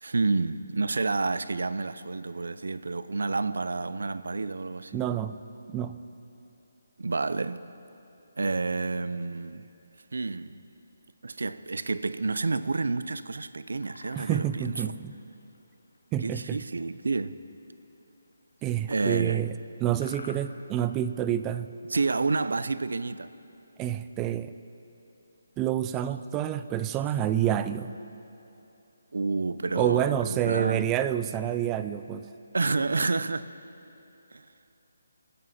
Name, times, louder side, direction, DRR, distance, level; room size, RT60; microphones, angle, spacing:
voice 1, 0.0-5.0 7.0-7.6 8.4-9.7 10.1-10.6 11.2-14.7 16.2-17.4 18.9-19.5 21.9-23.3 29.1-30.9 32.5-33.5 34.3-34.4, right 3 dB, 80° right, 0.5 m, -29 dB
voice 2, 4.9-5.4 5.7-6.0 14.2-15.1 16.1-16.6 18.6-19.5 19.8-21.7 23.8-24.5 25.6-27.9 29.8-32.3, right 11 dB, 15° right, 0.3 m, -28 dB
sound 1, 13.6-14.8 15.3-15.6 15.9-16.8 17.6-17.7 18.3-19.4 20.0-20.3, left 4 dB, 70° left, 1.0 m, -48 dB
23.0 x 9.5 x 4.2 m
hypercardioid pair, 165°, 0 cm